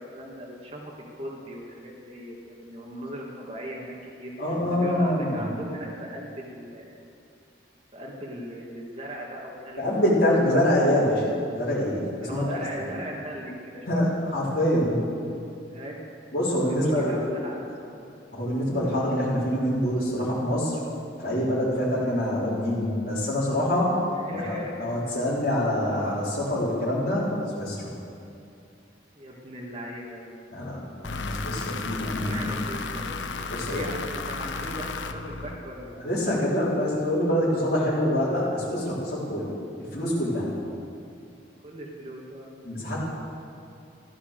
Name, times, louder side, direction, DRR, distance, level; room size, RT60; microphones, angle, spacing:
voice 1, 0.0-7.0 7.9-9.8 12.2-14.0 15.7-16.0 16.7-17.2 17.4-18.1 24.2-25.2 29.1-30.2 32.0-33.4 33.6-36.0 41.6-42.6, equal, 30° right, -3 dB, 2.1 m, -39 dB
voice 2, 4.4-5.4 9.8-11.2 11.5-12.9 13.9-15.0 16.3-17.2 18.3-20.8 21.2-24.0 24.3-27.3 27.6-27.9 30.5-32.7 33.5-33.8 36.0-39.5 39.8-40.5 42.6-43.0, left 1 dB, 50° left, -9 dB, 4.4 m, -25 dB
sound 1, 31.0-36.0, left 4 dB, 85° left, 0.8 m, -34 dB
14.5 x 11.5 x 6.8 m, 2.6 s
head